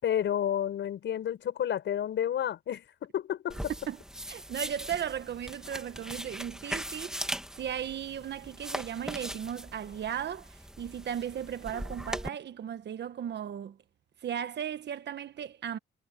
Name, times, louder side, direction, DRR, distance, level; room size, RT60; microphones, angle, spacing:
voice 1, 0.0-3.7, left 10 dB, 70° left, 5.6 m, -30 dB
sound 1, 3.5-12.3, equal, 5° right, 2.1 m, -40 dB
voice 2, 4.3-13.8 14.2-15.8, right 9 dB, 60° right, 1.5 m, -36 dB
cardioid pair, 90°, 20 cm